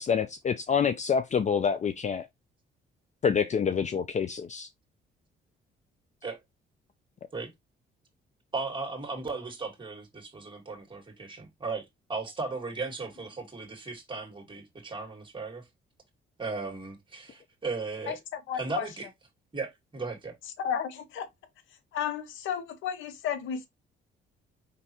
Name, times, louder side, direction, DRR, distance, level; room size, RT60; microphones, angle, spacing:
voice 1, 0.0-2.3 3.2-4.7, left 7 dB, 35° left, 0.5 m, -27 dB
voice 2, 8.5-15.7 16.4-18.2 18.5-19.1 19.5-20.3, right 3 dB, 25° right, 2.0 m, -36 dB
voice 3, 18.1-18.9 20.6-21.3 21.9-23.7, left 8 dB, 85° left, 0.8 m, -33 dB
5.2 x 3.2 x 2.9 m
cardioid pair, 90°, 20 cm